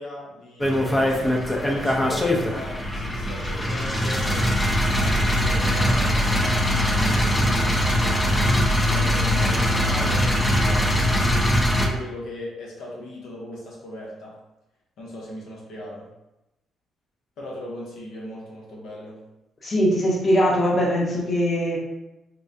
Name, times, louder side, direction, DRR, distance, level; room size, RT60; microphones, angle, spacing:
voice 1, 0.0-4.5 5.0-14.4 15.0-16.1 17.4-19.2, left 1 dB, 80° left, -4 dB, 0.9 m, -38 dB
sound 1, 0.6-11.9, equal, 15° left, 0.5 m, -21 dB
voice 2, 19.6-21.8, equal, 35° left, -3 dB, 0.9 m, -21 dB
4.5 x 2.2 x 2.6 m, 0.93 s
cardioid pair, 90°, 0 cm